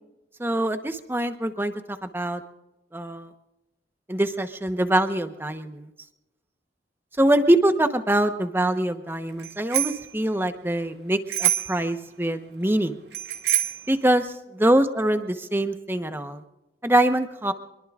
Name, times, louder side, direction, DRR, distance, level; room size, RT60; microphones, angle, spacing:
voice 1, 0.4-2.4 2.9-3.3 4.1-5.9 7.2-13.0 13.9-16.4 16.8-17.5, right 1 dB, 15° right, 8 dB, 1.0 m, -24 dB
Bicycle bell, 9.4-10.1 11.3-11.9 13.1-13.9, right 12 dB, 70° right, 2.1 m, -25 dB
25.0 x 22.0 x 2.5 m, 0.98 s
head